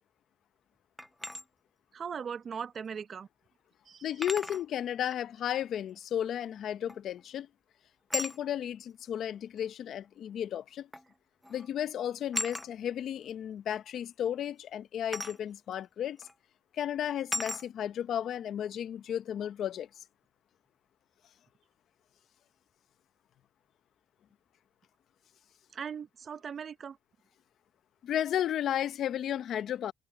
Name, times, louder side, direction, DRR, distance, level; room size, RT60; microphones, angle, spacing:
sound 1, 1.0-1.4 3.0-3.1 4.2-4.7 6.9-7.2 8.1-8.4 9.6-9.7 10.9-11.1 11.4-11.7 12.3-12.7 15.1-15.4 16.2-16.3 17.3-17.7, left 1 dB, 5° left, 0.6 m, -36 dB
voice 1, 1.9-3.3 3.9-4.0 25.7-27.0, right 7 dB, 50° right, 0.7 m, -39 dB
voice 2, 4.0-7.5 8.1-10.9 11.5-16.2 16.7-19.9 28.0-29.9, left 10 dB, 70° left, 0.8 m, -33 dB
cardioid pair, 90°, 0 cm